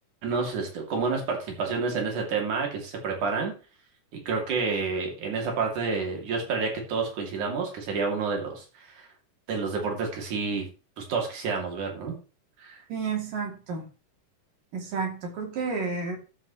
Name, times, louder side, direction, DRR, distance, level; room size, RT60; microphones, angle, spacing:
voice 1, 0.2-3.5 4.3-9.1 9.5-10.7 11.0-12.2 12.6-12.8, right 4 dB, 70° right, 1 dB, 4.1 m, -29 dB
voice 2, 12.9-13.8 14.7-16.2, right 5 dB, 90° right, 1 dB, 4.5 m, -31 dB
13.0 x 7.8 x 3.2 m, 0.33 s
omnidirectional pair, 3.7 m